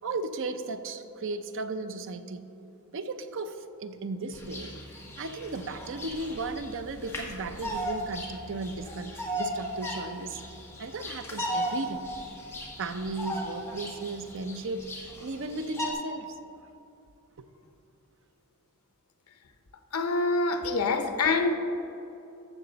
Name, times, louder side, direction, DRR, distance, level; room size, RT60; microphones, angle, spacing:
voice 1, 0.0-2.4 2.9-4.7 5.2-10.4 10.8-12.0 12.8-16.3, right 3 dB, 60° right, 9 dB, 0.6 m, -35 dB
Bird vocalization bird call bird song, 4.3-15.9, equal, 10° left, 1.4 m, -37 dB
voice 2, 19.9-21.5, left 3 dB, 75° left, 6 dB, 0.8 m, -25 dB
14.0 x 6.8 x 4.0 m, 2.8 s
head